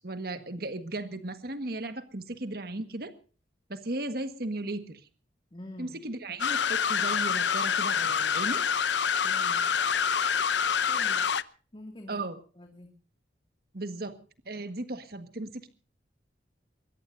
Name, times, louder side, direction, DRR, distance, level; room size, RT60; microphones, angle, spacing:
voice 1, 0.0-3.1 3.7-5.1 5.8-8.6 12.1-12.4 13.7-14.2 14.4-15.7, right 2 dB, 55° right, 9 dB, 1.6 m, -36 dB
voice 2, 5.5-6.0 9.2-9.7 10.8-11.3 11.7-12.3 12.5-12.9, left 1 dB, 30° left, 4 dB, 2.3 m, -46 dB
sound 1, 6.4-11.4, left 7 dB, 75° left, 0.7 m, -26 dB
22.5 x 20.0 x 2.7 m, 0.38 s
head